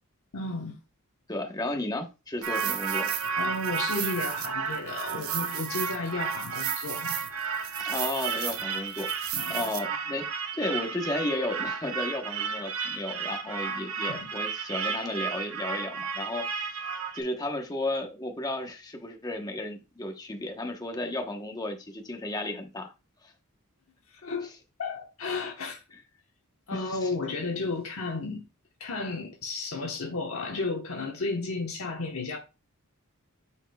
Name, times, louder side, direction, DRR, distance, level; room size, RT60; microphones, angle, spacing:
voice 1, 0.3-0.8 3.4-7.2 9.3-9.5 14.1-14.3 24.1-24.5 24.8-25.8 26.7-28.5 28.8-32.4, left 3 dB, 70° left, 1.2 m, -33 dB
voice 2, 1.3-3.1 7.8-10.2 10.5-16.8 17.1-22.9 23.2-23.3 26.7-27.1, left 1 dB, 15° left, 1.0 m, -33 dB
sound 1, 2.4-17.2, right 6 dB, 70° right, 0.8 m, -32 dB
9.7 x 4.5 x 2.3 m
head